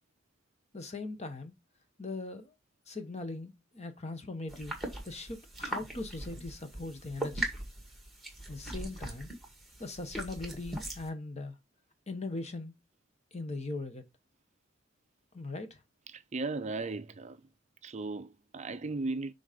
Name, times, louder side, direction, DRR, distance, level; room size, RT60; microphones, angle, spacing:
voice 1, 0.7-1.5 2.0-2.5 2.9-4.8 5.0-7.5 8.5-9.3 9.8-11.5 12.1-12.7 13.3-14.0 15.3-15.7, left 2 dB, 35° left, 1.1 m, -40 dB
sound 1, 4.5-11.1, right 2 dB, ahead, 1.9 m, -40 dB
voice 2, 16.1-17.4 17.8-19.3, right 3 dB, 35° right, 0.5 m, -36 dB
6.3 x 3.9 x 5.1 m
head